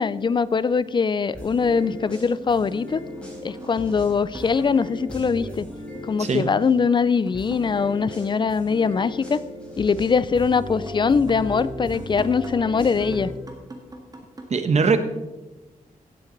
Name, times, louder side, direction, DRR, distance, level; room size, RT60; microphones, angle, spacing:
voice 1, 0.0-3.0 3.4-5.7 6.0-9.4 9.8-13.3, left 5 dB, 35° left, 17 dB, 0.4 m, -22 dB
sound 1, 0.8-0.9 2.0-8.5 8.9-12.7 13.0-14.4, right 2 dB, 25° right, 1.8 m, -43 dB
sound 2, 1.3-6.7 7.3-13.3, left 1 dB, 5° left, 3.7 m, -36 dB
voice 2, 14.5-15.0, right 4 dB, 55° right, 9 dB, 1.0 m, -20 dB
16.5 x 8.4 x 3.9 m, 1.1 s
wide cardioid pair, 155°, 14 cm